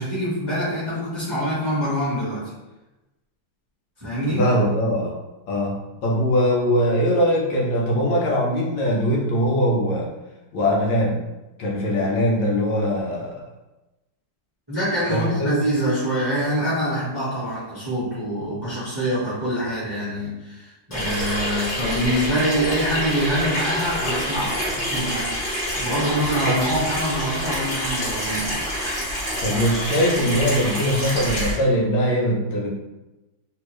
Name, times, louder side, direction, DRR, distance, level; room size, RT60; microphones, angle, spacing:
voice 1, 0.0-2.5 4.0-4.5 14.7-25.4 25.7-28.6, equal, 25° right, -10 dB, 0.5 m, -25 dB
voice 2, 4.4-5.2 5.5-10.1 10.5-11.2 11.6-13.4 15.1-15.5 26.4-26.6 29.4-32.7, equal, 70° left, -2 dB, 1.4 m, -21 dB
Water tap faucet / Sink (filling or washing), 20.9-31.5, equal, 30° left, 1.0 m, -27 dB
3.4 x 2.7 x 3.0 m, 1.0 s
omnidirectional pair, 2.4 m